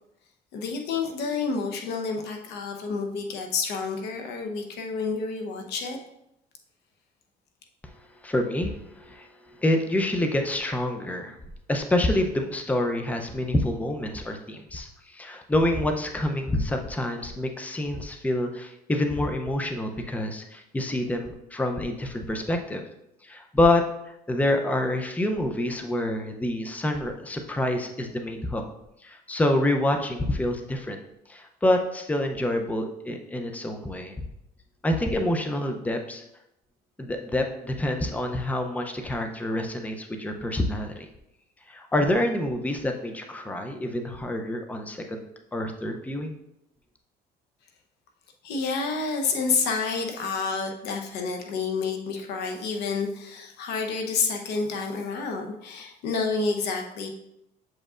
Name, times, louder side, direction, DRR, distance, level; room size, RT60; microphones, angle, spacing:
voice 1, 0.5-6.0 48.4-57.1, left 4 dB, 80° left, 3 dB, 0.9 m, -29 dB
voice 2, 8.2-11.4 11.7-22.8 23.2-23.8 24.3-28.6 29.0-31.0 31.3-34.1 34.8-36.2 37.0-41.1 41.7-45.2 45.5-46.3, left 1 dB, 10° left, 4 dB, 0.6 m, -27 dB
7.5 x 5.1 x 2.5 m, 0.84 s
cardioid pair, 110°, 17 cm